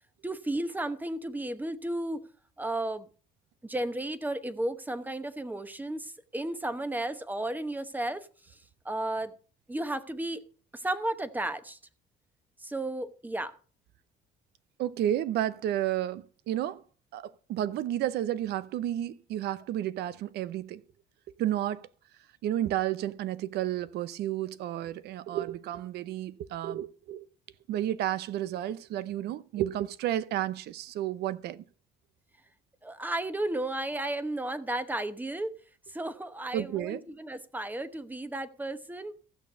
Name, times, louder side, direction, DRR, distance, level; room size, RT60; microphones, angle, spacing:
voice 1, 0.2-2.2 2.6-3.1 3.6-8.6 8.8-9.3 9.7-10.4 10.7-11.8 12.6-13.6 32.8-35.5 35.9-39.1, right 1 dB, 10° right, 1.0 m, -33 dB
voice 2, 14.8-16.8 17.1-20.8 21.4-21.9 22.4-27.3 27.7-31.6 36.5-37.0, right 12 dB, 75° right, 0.7 m, -31 dB
15.0 x 6.6 x 5.2 m
cardioid pair, 110°, 17 cm